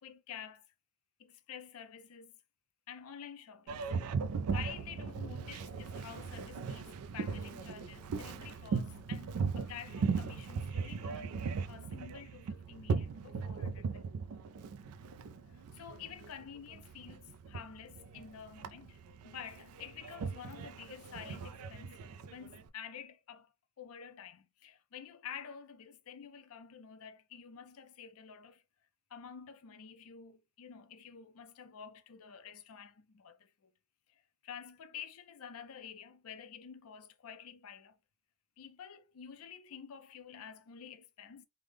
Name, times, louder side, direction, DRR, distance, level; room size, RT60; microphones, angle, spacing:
voice 1, 0.0-0.7 1.2-2.3 2.9-3.8 4.5-14.0 15.4-19.0 19.2-22.0 22.3-23.5 23.8-28.6 29.1-33.7 34.1-38.0 38.6-41.4, left 8 dB, 65° left, 0.5 m, -49 dB
Boat Water vehicle, 3.7-22.7, right 5 dB, 75° right, 0.3 m, -38 dB
3.3 x 2.0 x 3.4 m
head